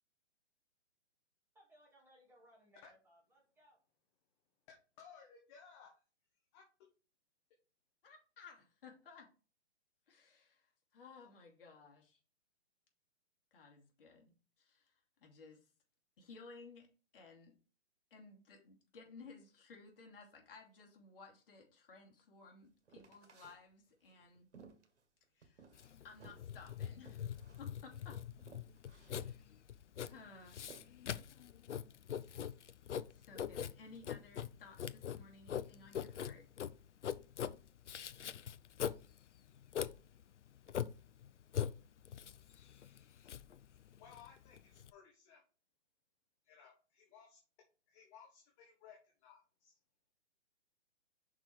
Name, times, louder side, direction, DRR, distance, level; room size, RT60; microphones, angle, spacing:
voice 1, 1.5-3.8, equal, 5° right, -4 dB, 2.2 m, -66 dB
voice 2, 5.0-5.9 6.5-6.6 44.0-45.4 46.4-47.4 47.9-49.7, left 7 dB, 25° left, 0 dB, 1.4 m, -59 dB
voice 3, 8.0-9.3 10.1-12.2 13.5-15.6 16.2-17.5 18.1-24.5 25.3-25.6 26.0-28.2 28.9-29.4 30.1-30.6 33.1-36.5, left 4 dB, 50° left, 1 dB, 2.7 m, -57 dB
sound 1, 22.9-23.6 24.1-25.9 26.2-26.5 27.0-27.7 28.0-28.1 28.4-29.3 30.0-30.9, right 5 dB, 75° right, 1.8 m, -59 dB
Writing, 25.7-44.9, left 9 dB, 75° left, 0.6 m, -43 dB
5.9 x 4.6 x 5.0 m, 0.36 s
hypercardioid pair, 140°, 35 cm